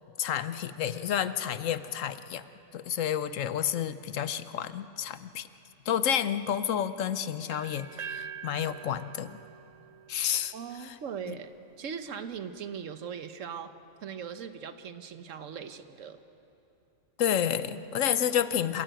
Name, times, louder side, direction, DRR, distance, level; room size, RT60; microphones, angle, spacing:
voice 1, 0.2-2.4 2.7-5.5 5.9-9.4 10.1-10.5 10.8-11.0 11.3-11.4 17.2-18.8, left 9 dB, 75° left, 13 dB, 1.1 m, -30 dB
sound 1, 7.5-11.4, right 7 dB, 45° right, 0.6 m, -44 dB
voice 2, 10.5-11.5 11.8-13.7 14.0-16.2, right 7 dB, 75° right, 10 dB, 1.3 m, -39 dB
27.0 x 14.0 x 9.1 m, 3.0 s
omnidirectional pair, 1.4 m